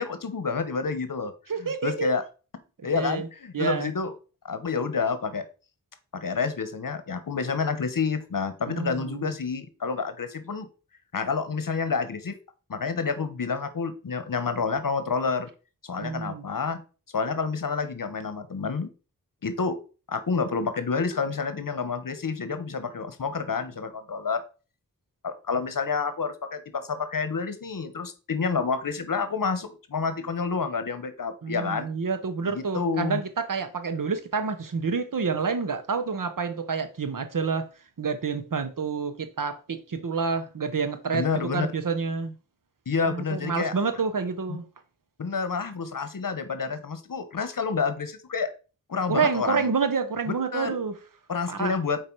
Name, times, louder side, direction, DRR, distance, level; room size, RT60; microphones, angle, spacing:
voice 1, 0.0-1.3 1.6-2.2 2.8-4.1 4.4-5.4 6.1-10.7 11.1-12.4 12.7-15.5 15.8-16.8 17.1-18.9 19.4-19.8 20.1-24.4 25.2-31.9 32.4-33.2 41.1-41.7 42.9-43.7 45.2-48.5 48.9-49.7 50.5-50.8 51.3-52.0, left 5 dB, 75° left, 1.1 m, -29 dB
voice 2, 1.5-2.1 2.9-3.3 3.5-3.9 8.7-9.3 16.0-16.4 31.4-37.7 38.0-42.3 43.1-44.7 49.1-51.0 51.5-51.7, right 5 dB, 70° right, 1.1 m, -28 dB
7.6 x 4.7 x 4.6 m
wide cardioid pair, 80°, 34 cm